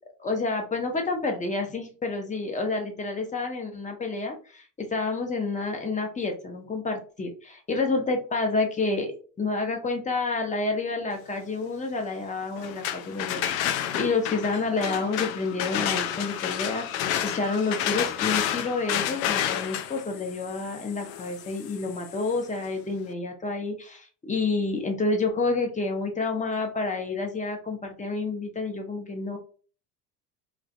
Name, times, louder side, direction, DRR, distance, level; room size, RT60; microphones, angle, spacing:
voice 1, 0.2-9.1 9.4-29.4, left 3 dB, 15° left, 3 dB, 0.7 m, -29 dB
sound 1, 12.6-22.4, left 10 dB, 55° left, 0.5 m, -30 dB
2.4 x 2.1 x 2.4 m, 0.39 s
hypercardioid pair, 65°, 49 cm